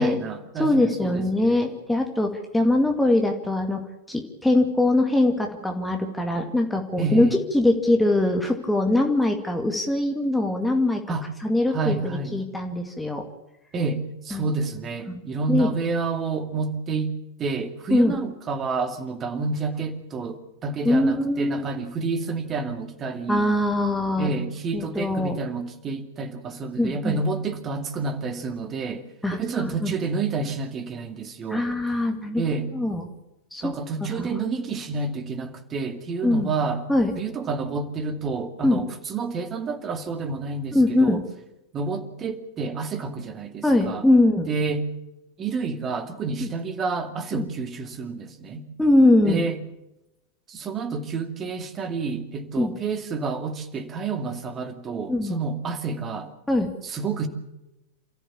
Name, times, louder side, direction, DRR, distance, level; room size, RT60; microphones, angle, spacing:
voice 1, 0.0-1.7 7.0-7.4 11.1-11.3 11.7-12.4 13.7-23.5 24.2-31.7 32.4-32.7 33.6-36.8 37.2-41.2 41.7-44.0 44.5-44.9 45.4-48.7 49.3-49.6 50.5-56.3 56.8-57.3, right 4 dB, 25° right, 2.4 m, -29 dB
voice 2, 0.6-3.8 4.1-7.3 7.5-11.0 11.4-13.2 14.3-14.4 15.1-15.2 15.5-15.7 17.9-18.2 20.8-21.6 23.3-24.4 24.7-25.4 26.8-27.2 29.2-29.4 29.8-29.9 31.5-32.4 32.7-33.1 33.5-33.7 34.2-34.3 36.2-36.5 36.9-37.1 38.6-38.8 40.7-41.2 43.6-44.5 46.4-46.5 47.3-47.5 48.8-49.5 52.6-52.7 55.1-55.3 56.5-56.7, left 1 dB, 5° left, 2.3 m, -22 dB
28.0 x 14.5 x 7.3 m
figure-of-eight pair, 90°, 0 cm